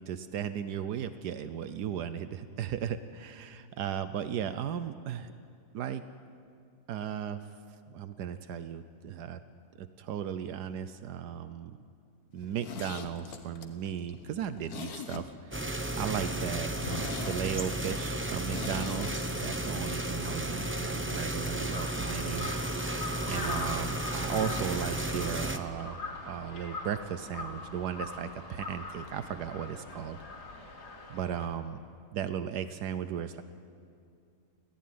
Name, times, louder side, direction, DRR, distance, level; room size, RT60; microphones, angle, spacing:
voice 1, 0.0-5.3 5.7-6.0 6.9-7.4 7.9-9.4 9.8-11.8 12.3-15.7 16.0-22.5 22.8-30.2 31.1-31.8 32.1-33.4, right 8 dB, 80° right, 11 dB, 1.4 m, -36 dB
Zipper (clothing), 12.4-15.7 16.0-16.1 16.4-16.5 16.8-19.2 19.5-19.6, left 5 dB, 65° left, 1.7 m, -42 dB
sound 1, 15.5-25.6, right 1 dB, 10° right, 0.7 m, -33 dB
Crow, 21.7-31.4, left 3 dB, 90° left, 3.6 m, -41 dB
28.5 x 15.0 x 9.5 m, 2.4 s
omnidirectional pair, 1.7 m